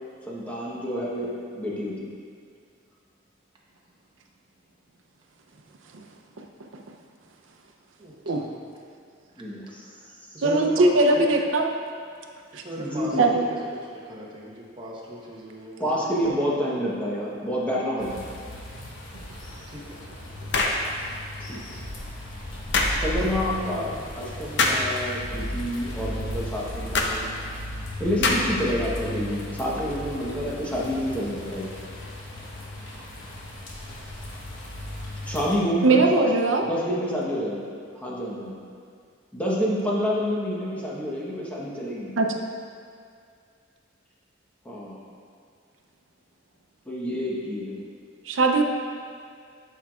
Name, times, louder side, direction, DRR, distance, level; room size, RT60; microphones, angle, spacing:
voice 1, 0.3-2.1 9.4-9.8 10.3-10.4 12.8-13.4 15.8-18.2 21.5-21.6 23.0-27.3 28.0-31.7 35.2-36.3 36.6-37.6 37.9-38.6 39.3-42.1 44.6-45.0 46.8-47.8, equal, 5° left, -6 dB, 1.0 m, -28 dB
voice 2, 8.0-8.6 9.8-10.1 10.3-11.3 12.5-16.2 19.3-20.6 24.3-24.4, equal, 25° right, -5 dB, 1.0 m, -37 dB
voice 3, 10.4-11.7 12.5-12.6 13.2-13.5 35.8-36.6 42.2-42.4 48.3-48.6, right 2 dB, 80° right, 4 dB, 0.6 m, -20 dB
sound 1, 18.0-35.6, left 1 dB, 90° left, 1.0 m, -36 dB
sound 2, 20.5-20.8 22.7-23.0 24.6-24.9 26.9-27.1 28.2-28.6, left 3 dB, 65° left, 0.6 m, -22 dB
11.5 x 4.6 x 2.4 m, 2.2 s
head